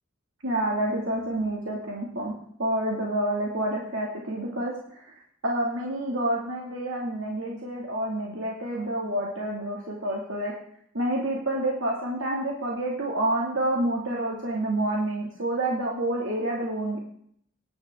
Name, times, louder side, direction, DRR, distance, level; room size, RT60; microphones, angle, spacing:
voice 1, 0.4-2.3 2.6-5.1 5.4-10.5 10.9-17.0, right 1 dB, 75° right, -2 dB, 2.5 m, -28 dB
18.5 x 11.0 x 3.8 m, 0.66 s
head